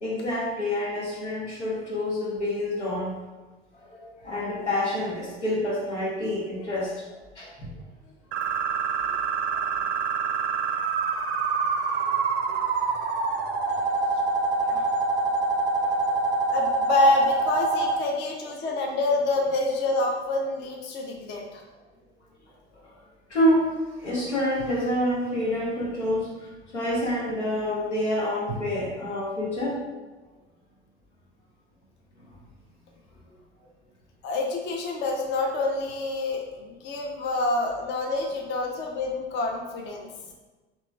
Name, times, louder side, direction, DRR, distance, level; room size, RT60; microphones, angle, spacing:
voice 1, 0.0-3.1 3.9-6.9 7.3-7.7 9.5-9.7 12.0-12.1 15.8-16.1 18.4-18.5 23.3-23.7 24.0-26.3 26.7-29.8, left 1 dB, 85° left, -6 dB, 1.1 m, -27 dB
sound 1, 8.3-18.0, right 4 dB, 45° right, 0.5 m, -26 dB
voice 2, 14.6-14.9 16.5-21.6 34.2-40.1, left 2 dB, 30° left, 1 dB, 0.5 m, -27 dB
4.0 x 3.0 x 2.3 m, 1.2 s
figure-of-eight pair, 70°, 34 cm